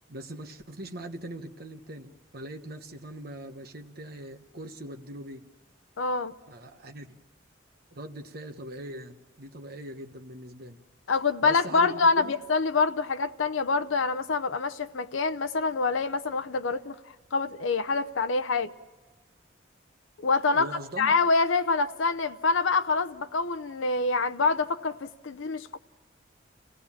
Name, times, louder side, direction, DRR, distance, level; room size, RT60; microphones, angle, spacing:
voice 1, 0.1-5.5 6.5-7.2 7.9-10.8 11.4-12.3 20.5-21.1, right 1 dB, 50° right, 1.3 m, -41 dB
voice 2, 6.0-6.3 11.1-17.0 17.3-18.7 20.2-20.7 21.0-25.8, left 4 dB, 90° left, 0.7 m, -26 dB
28.0 x 17.0 x 7.3 m
head